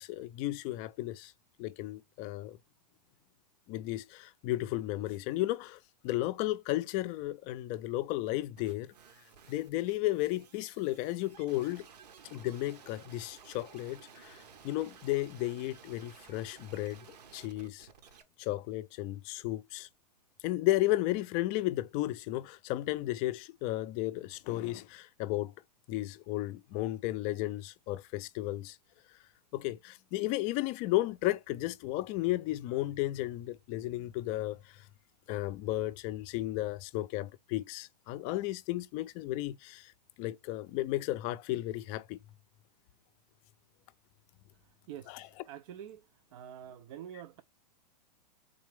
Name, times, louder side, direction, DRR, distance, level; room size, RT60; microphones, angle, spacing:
voice 1, 0.0-1.3 1.6-2.6 3.7-8.9 9.5-11.9 12.3-17.9 18.4-19.9 20.4-25.5 25.9-28.8 29.5-34.8 35.3-39.9 40.2-42.2 45.1-45.3, left 16 dB, 35° left, 0.4 m, -34 dB
sound 1, 8.6-18.2, right 7 dB, 70° right, 0.9 m, -55 dB
voice 2, 44.9-46.1 46.3-47.4, right 10 dB, 55° right, 0.4 m, -46 dB
3.8 x 3.2 x 3.2 m
hypercardioid pair, 120°, 21 cm